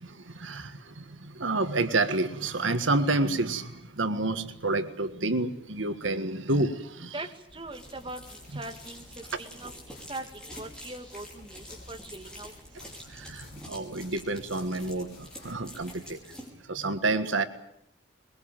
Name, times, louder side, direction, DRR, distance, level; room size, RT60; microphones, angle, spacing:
voice 1, 0.0-7.1 13.1-16.2 16.7-17.4, right 2 dB, 80° right, 10 dB, 1.7 m, -29 dB
voice 2, 7.1-9.0 9.4-9.7 10.1-12.5, right 2 dB, 25° right, 5 dB, 1.9 m, -41 dB
sound 1, 7.5-16.1, left 2 dB, 50° left, 7.3 m, -53 dB
sound 2, 7.7-16.5, left 1 dB, 5° left, 5.6 m, -47 dB
22.0 x 22.0 x 9.0 m, 0.71 s
head